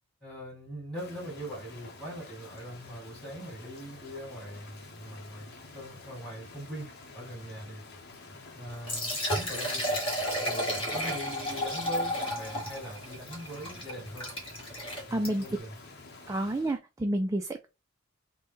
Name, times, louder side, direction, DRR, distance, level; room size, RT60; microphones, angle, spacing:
voice 1, 0.2-7.8 8.5-10.0 10.4-14.3 15.1-15.8, equal, ahead, 2.4 m, -42 dB
Rain, 0.9-16.8, left 3 dB, 55° left, 0.9 m, -49 dB
Liquid, 8.7-15.6, equal, 25° left, 1.4 m, -33 dB
voice 2, 14.9-15.4 16.3-17.7, right 1 dB, 15° right, 0.3 m, -30 dB
4.0 x 2.2 x 3.5 m
head